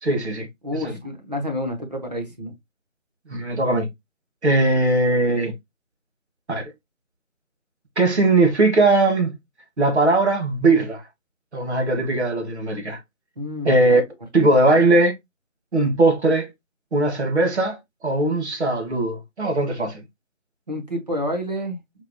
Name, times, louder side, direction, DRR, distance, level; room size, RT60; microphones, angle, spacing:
voice 1, 0.0-0.5 0.8-1.0 3.3-3.9 4.4-5.5 6.5-6.7 8.0-9.3 9.8-11.0 11.5-13.0 13.6-14.0 14.3-15.1 15.7-16.5 16.9-17.8 18.0-20.0, right 2 dB, 55° right, 1.4 m, -19 dB
voice 2, 0.6-2.5 13.4-13.8 20.7-21.8, left 1 dB, 30° right, 0.9 m, -29 dB
4.5 x 2.8 x 2.2 m
figure-of-eight pair, 170°, 40 cm